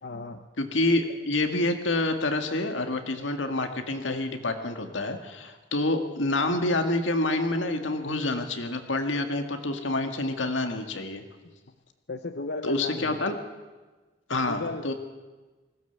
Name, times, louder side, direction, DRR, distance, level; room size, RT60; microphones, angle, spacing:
voice 1, 0.0-0.5 11.4-11.5 12.1-13.2 14.5-14.9, left 3 dB, 60° left, 8 dB, 0.8 m, -35 dB
voice 2, 0.6-11.2 12.6-13.3 14.3-14.9, left 2 dB, 85° left, 6 dB, 1.9 m, -27 dB
20.0 x 16.5 x 8.1 m, 1.3 s
head